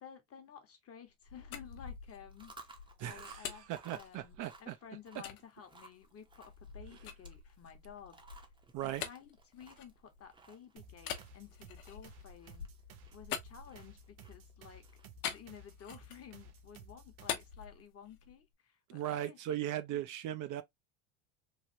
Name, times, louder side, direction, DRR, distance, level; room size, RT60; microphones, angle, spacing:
voice 1, 0.0-8.2 8.8-12.7 13.1-14.8 15.2-19.6 19.9-20.0, left 8 dB, 35° left, 1.0 m, -54 dB
sound 1, 1.1-4.6 5.2-5.4 6.0-10.4 11.0-14.2 15.2-16.3 16.7-18.4, left 8 dB, 80° left, 0.8 m, -45 dB
Chewing mastication, 2.2-15.4, right 3 dB, 10° right, 0.7 m, -59 dB
voice 2, 3.0-4.8 8.7-9.0 18.9-20.6, right 12 dB, 50° right, 0.5 m, -38 dB
sound 2, 10.8-17.6, right 1 dB, 90° right, 0.8 m, -56 dB
3.2 x 2.3 x 2.7 m
supercardioid pair, 95°, 42 cm